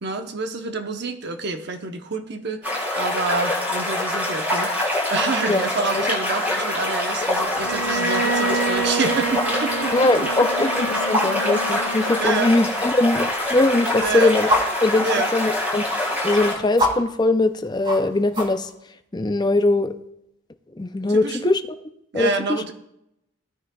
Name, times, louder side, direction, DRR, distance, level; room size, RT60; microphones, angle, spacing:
voice 1, 0.0-9.9 12.2-12.5 14.0-14.4 15.0-15.3 21.1-21.5 22.1-22.7, right 3 dB, 55° right, 0.9 m, -28 dB
sound 1, 2.6-16.5, left 1 dB, 10° right, 4.4 m, -25 dB
sound 2, 7.5-18.7, equal, 25° right, 2.3 m, -32 dB
Bowed string instrument, 7.6-12.6, right 3 dB, 75° right, 1.1 m, -28 dB
voice 2, 9.9-14.5 14.8-15.1 15.3-18.7 19.1-19.9 20.8-21.6 22.1-22.6, left 2 dB, 20° left, 0.5 m, -21 dB
17.0 x 9.6 x 2.3 m
head